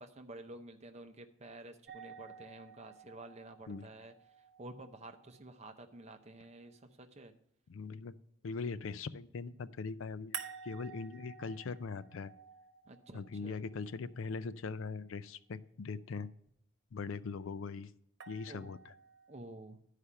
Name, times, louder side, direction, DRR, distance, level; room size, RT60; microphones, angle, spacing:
voice 1, 0.0-4.1 4.6-7.3 12.9-13.6 18.5-18.7 19.3-19.8, right 2 dB, 30° right, 7 dB, 0.8 m, -51 dB
sound 1, 1.9-6.8 10.3-14.4 18.2-19.4, right 7 dB, 55° right, 1.2 m, -51 dB
voice 2, 7.7-8.1 8.4-12.3 13.1-16.3 16.9-17.9 18.3-18.9, left 4 dB, 65° left, 15 dB, 0.4 m, -41 dB
11.5 x 5.0 x 5.6 m, 0.71 s
head